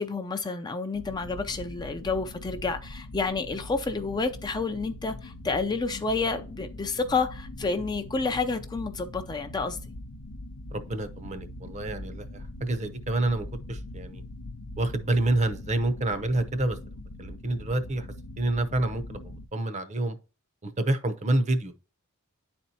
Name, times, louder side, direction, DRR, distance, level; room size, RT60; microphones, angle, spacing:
voice 1, 0.0-9.8, left 4 dB, 20° left, 0.4 m, -29 dB
sound 1, 0.9-19.5, left 1 dB, 85° left, 0.6 m, -42 dB
voice 2, 10.7-14.2 14.8-16.8 17.2-18.1 18.4-20.2 20.6-21.7, right 2 dB, 30° right, 0.7 m, -28 dB
10.0 x 4.3 x 2.7 m
head